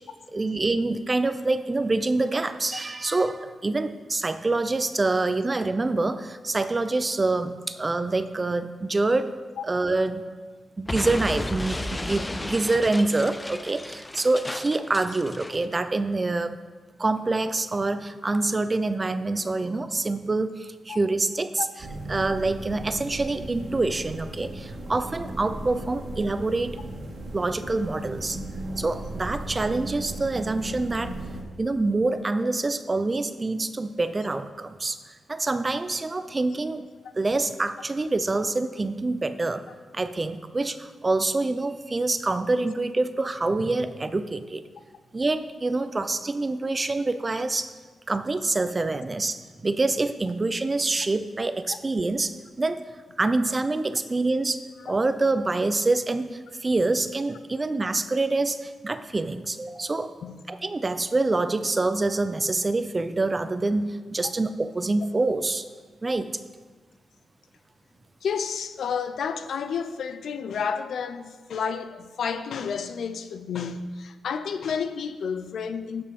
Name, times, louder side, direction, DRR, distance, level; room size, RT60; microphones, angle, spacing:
voice 1, 0.3-9.3 9.6-10.2 10.8-16.6 17.0-21.7 22.1-26.8 27.3-28.4 28.8-31.2 31.6-36.9 37.2-39.7 39.9-44.6 45.1-47.7 48.1-52.8 53.2-60.1 60.5-65.6 66.0-66.4, right 2 dB, 30° right, 0.6 m, -26 dB
Explosion, 10.9-15.7, left 1 dB, 15° left, 0.4 m, -33 dB
sound 1, 21.8-31.4, right 1 dB, 65° right, 2.0 m, -36 dB
voice 2, 68.2-76.0, left 6 dB, 75° left, 0.6 m, -31 dB
14.0 x 5.5 x 5.3 m
cardioid pair, 85°, 0 cm